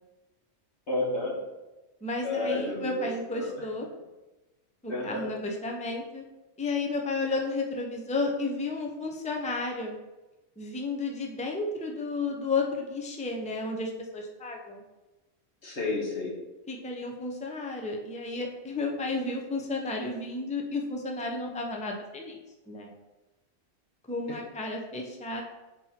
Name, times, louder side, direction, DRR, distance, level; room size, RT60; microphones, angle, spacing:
voice 1, 0.9-1.4 2.2-3.0 3.3-3.7 4.9-5.3 15.6-16.3 24.3-24.4, left 2 dB, 80° left, -3 dB, 1.8 m, -31 dB
voice 2, 2.0-3.9 4.8-6.2 6.6-10.0 10.6-14.8 16.7-22.4 22.7-22.9 24.1-25.4, left 3 dB, 10° left, 1 dB, 0.6 m, -32 dB
4.5 x 4.4 x 5.7 m, 1.1 s
omnidirectional pair, 1.1 m